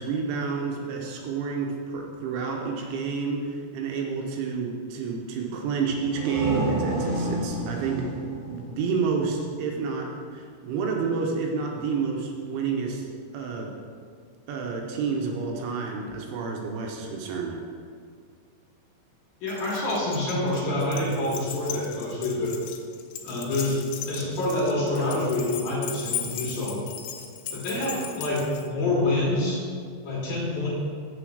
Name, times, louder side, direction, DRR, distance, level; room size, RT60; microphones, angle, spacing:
voice 1, 0.0-8.1 8.5-13.1 13.3-13.7 14.5-17.6, right 5 dB, 80° right, 0 dB, 3.1 m, -29 dB
sound 1, 5.9-9.5, right 1 dB, 55° right, 3.4 m, -30 dB
voice 2, 19.4-22.6 23.2-23.8 24.1-26.8 27.5-29.6 30.1-30.7, left 2 dB, 60° left, -6 dB, 2.8 m, -27 dB
Keys jangling, 19.5-28.7, left 9 dB, 80° left, 3.0 m, -37 dB
6.9 x 6.8 x 6.4 m, 2.1 s
omnidirectional pair, 5.8 m